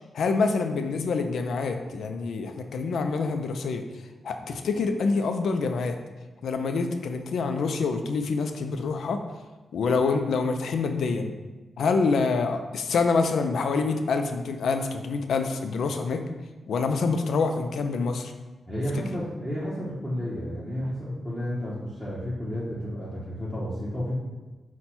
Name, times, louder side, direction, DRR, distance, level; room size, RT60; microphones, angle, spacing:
voice 1, 0.1-3.8 4.2-6.0 6.4-9.2 9.7-11.3 11.8-16.3 16.7-18.3, left 4 dB, 80° left, 6 dB, 0.4 m, -26 dB
voice 2, 18.7-24.2, equal, 5° left, -10 dB, 0.8 m, -31 dB
5.8 x 2.2 x 4.2 m, 1.2 s
wide cardioid pair, 165°, 0 cm